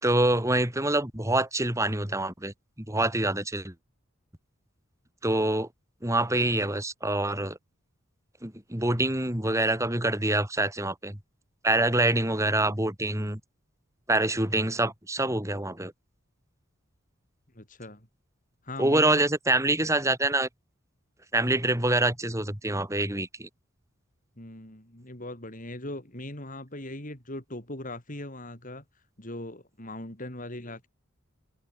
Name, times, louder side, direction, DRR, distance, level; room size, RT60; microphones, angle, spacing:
voice 1, 0.0-2.5 2.9-3.7 5.2-5.7 6.0-7.6 8.4-11.2 11.6-13.4 14.1-15.9 18.8-20.5 21.3-23.5, right 2 dB, 15° right, 3.8 m, -26 dB
voice 2, 17.5-18.1 18.6-19.3 24.4-28.8 29.2-30.9, left 1 dB, 40° left, 5.8 m, -39 dB
head